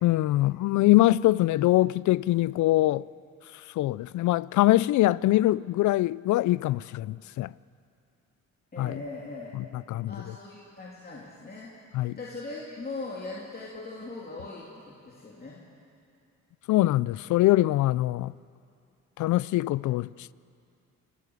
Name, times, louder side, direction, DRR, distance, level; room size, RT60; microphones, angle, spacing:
voice 1, 0.0-3.0 3.8-7.5 8.8-9.0 9.5-10.4 11.9-12.2 16.7-18.3 19.2-20.3, left 16 dB, 75° left, 0.5 m, -23 dB
voice 2, 8.7-9.5 10.1-11.7 12.2-15.6, left 3 dB, 30° left, 3.1 m, -40 dB
27.5 x 14.0 x 8.2 m
cardioid pair, 90°, 30 cm